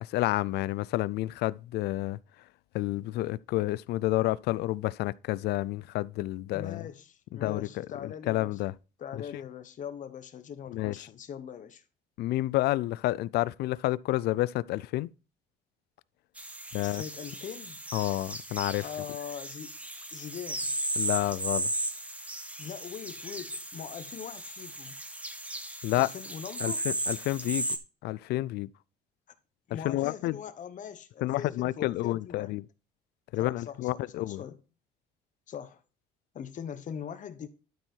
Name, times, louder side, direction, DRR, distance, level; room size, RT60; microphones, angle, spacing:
voice 1, 0.0-2.2 2.7-6.8 7.3-8.7 10.7-10.9 12.2-15.1 16.7-17.0 17.9-18.9 21.0-21.7 25.8-26.1 26.6-27.7 28.0-28.7 29.8-30.4 31.2-32.6 33.3-34.4, left 17 dB, 75° left, 0.4 m, -29 dB
voice 2, 6.5-8.6 9.0-11.8 16.7-17.8 18.8-19.7 20.1-20.8 22.6-25.0 25.9-26.8 29.7-32.5 33.4-34.6 35.5-35.8 36.3-37.5, left 8 dB, 50° left, 1.2 m, -41 dB
sound 1, 16.4-27.8, right 1 dB, 10° right, 1.2 m, -36 dB
12.0 x 4.5 x 4.5 m
cardioid pair, 110°, 17 cm